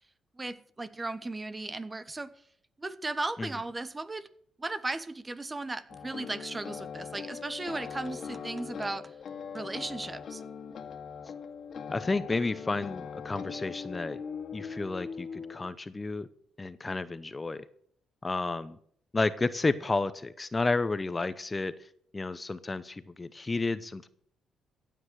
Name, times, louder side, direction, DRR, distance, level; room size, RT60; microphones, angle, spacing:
voice 1, 0.4-2.3 2.8-4.3 4.6-9.1 9.5-10.4, right 2 dB, 20° right, 14 dB, 1.1 m, -36 dB
sound 1, 5.9-15.7, left 6 dB, 60° left, 2.0 m, -41 dB
voice 2, 11.9-14.2 14.5-16.3 16.6-17.6 18.2-18.8 19.1-21.7 22.1-24.1, left 3 dB, 25° left, 14 dB, 0.7 m, -31 dB
15.0 x 9.0 x 6.3 m, 0.64 s
cardioid pair, 90°, 0 cm